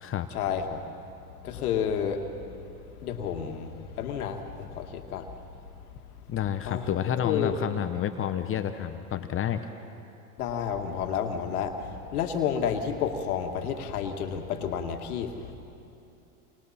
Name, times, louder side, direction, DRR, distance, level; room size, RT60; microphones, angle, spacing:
voice 1, 0.3-0.8 1.3-5.4 6.6-6.9 7.2-7.5 10.4-15.6, left 7 dB, 80° left, 4 dB, 2.1 m, -31 dB
voice 2, 6.3-9.6, left 9 dB, 30° left, 8 dB, 1.0 m, -29 dB
30.0 x 24.5 x 4.3 m, 2.7 s
hypercardioid pair, 105°, 44 cm